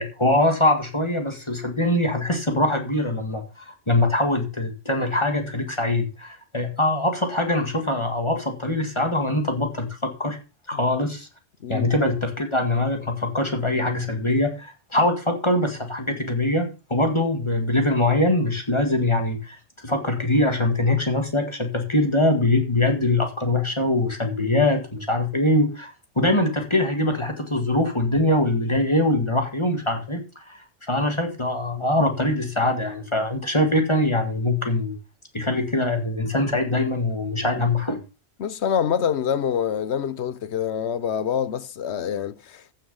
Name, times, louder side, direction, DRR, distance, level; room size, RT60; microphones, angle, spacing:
voice 1, 0.0-10.4 10.7-11.3 11.7-19.6 19.8-35.0 35.3-38.0, left 1 dB, 25° left, 2.1 m, -23 dB
voice 2, 11.6-11.9 38.4-42.7, left 8 dB, 70° left, 1.1 m, -26 dB
14.5 x 6.7 x 5.5 m
omnidirectional pair, 1.2 m